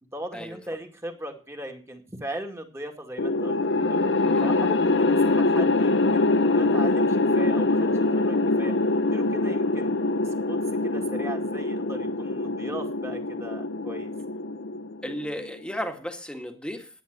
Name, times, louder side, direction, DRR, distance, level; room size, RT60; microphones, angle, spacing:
voice 1, 0.1-4.1 4.4-8.7 9.1-10.0 10.2-10.6 10.8-14.1, right 1 dB, 15° right, 3 dB, 2.2 m, -38 dB
sound 1, 3.2-15.5, left 2 dB, 75° left, 0.8 m, -24 dB
voice 2, 15.0-16.9, equal, 5° left, 5 dB, 1.9 m, -34 dB
11.5 x 9.7 x 6.6 m, 0.37 s
head